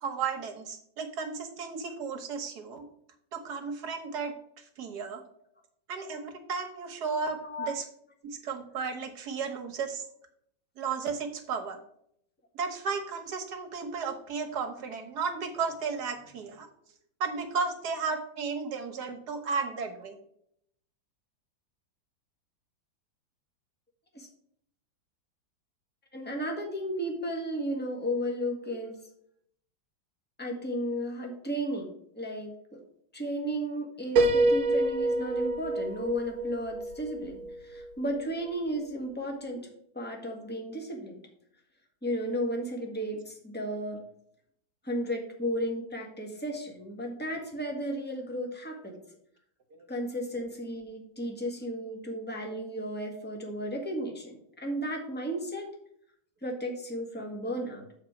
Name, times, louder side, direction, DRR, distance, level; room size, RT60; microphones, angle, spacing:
voice 1, 0.0-2.9 3.3-5.2 5.9-7.8 8.2-10.1 10.8-11.8 12.5-16.7 17.2-20.2 49.8-49.9, right 5 dB, 55° right, 5 dB, 1.6 m, -34 dB
voice 2, 7.4-7.7 24.1-24.3 26.1-29.0 30.4-31.9 32.1-32.5 33.1-39.7 39.9-41.2 42.0-44.0 44.8-49.0 49.9-55.7 56.4-57.8, equal, 5° left, 1 dB, 1.3 m, -34 dB
Piano, 34.2-37.9, right 2 dB, 85° right, 1.7 m, -27 dB
7.3 x 4.7 x 5.9 m, 0.70 s
omnidirectional pair, 2.1 m